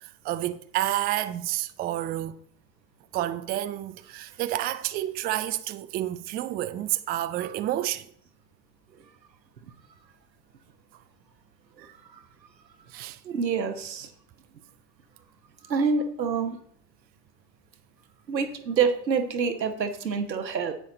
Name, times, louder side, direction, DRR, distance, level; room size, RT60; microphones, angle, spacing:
voice 1, 0.0-2.4 3.1-8.1 11.8-11.9 12.9-13.2, right 14 dB, 20° right, 0.4 m, -30 dB
voice 2, 13.3-14.1 15.7-16.6 18.3-20.7, right 5 dB, 80° right, 1.2 m, -26 dB
10.0 x 8.4 x 4.0 m
figure-of-eight pair, 75°, 50 cm